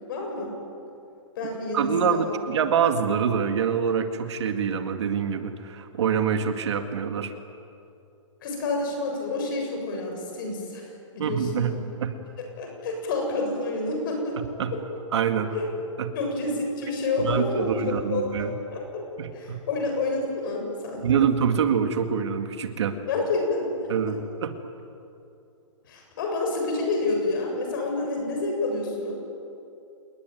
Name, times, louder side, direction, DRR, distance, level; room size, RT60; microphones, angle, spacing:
voice 1, 0.1-0.5 1.4-2.4 8.4-10.9 11.1-11.8 12.6-14.4 15.5-15.6 16.1-19.1 19.3-21.2 23.1-23.7 25.9-29.2, left 3 dB, 40° left, 2 dB, 7.5 m, -28 dB
voice 2, 1.7-7.3 11.2-12.2 14.6-14.7 15.1-15.5 16.0-16.1 17.2-18.5 19.2-19.6 21.0-23.0 23.9-24.5, right 7 dB, 60° right, 7 dB, 2.1 m, -25 dB
28.5 x 21.0 x 9.3 m, 2.6 s
hypercardioid pair, 170°, 17 cm